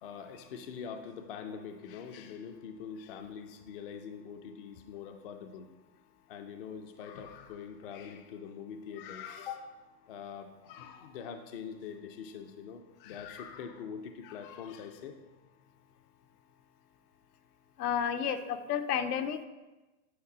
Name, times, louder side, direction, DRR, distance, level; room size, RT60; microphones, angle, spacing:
voice 1, 0.0-5.7 6.3-9.8 10.1-15.2, left 7 dB, 40° left, 6 dB, 0.4 m, -44 dB
voice 2, 17.8-19.4, left 8 dB, 75° left, 9 dB, 0.8 m, -31 dB
8.7 x 4.0 x 4.9 m, 1.1 s
supercardioid pair, 160°, 47 cm